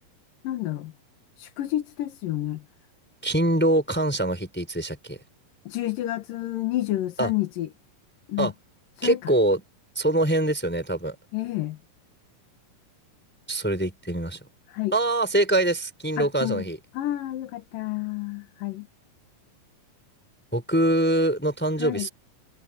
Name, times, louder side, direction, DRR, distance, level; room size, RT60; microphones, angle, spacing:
voice 1, 0.4-0.9 1.4-2.6 5.7-7.7 8.3-8.5 9.0-9.3 11.3-11.8 14.7-14.9 16.2-16.7 16.9-18.9 21.8-22.1, left 15 dB, 75° left, 3.0 m, -29 dB
voice 2, 3.2-5.2 7.2-7.3 8.4-8.5 9.0-9.6 10.0-11.1 13.5-14.4 14.9-16.8 20.5-22.1, right 1 dB, 5° left, 4.4 m, -24 dB
omnidirectional pair, 4.1 m